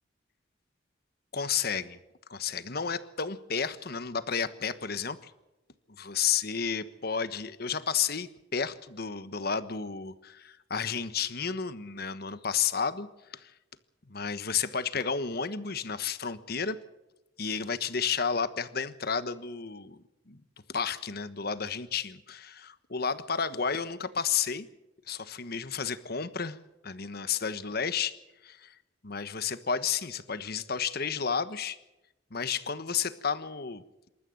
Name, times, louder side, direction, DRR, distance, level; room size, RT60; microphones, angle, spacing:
voice 1, 1.3-2.0 2.3-5.3 5.9-13.5 14.1-16.8 17.4-20.4 20.7-24.7 25.1-26.6 26.8-28.2 28.4-28.8 29.0-31.8 32.3-34.1, left 6 dB, 55° left, 12 dB, 1.3 m, -32 dB
27.5 x 13.5 x 7.8 m, 0.97 s
head